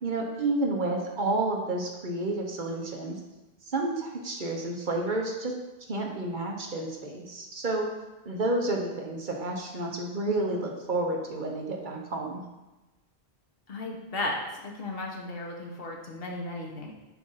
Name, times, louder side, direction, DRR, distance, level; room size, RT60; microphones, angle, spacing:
voice 1, 0.0-3.1 3.6-5.5 5.9-7.9 8.2-12.4, right 2 dB, 50° right, 1 dB, 1.0 m, -30 dB
voice 2, 13.7-16.9, left 2 dB, 65° left, 0 dB, 1.2 m, -35 dB
7.2 x 2.6 x 5.5 m, 1.1 s
omnidirectional pair, 1.1 m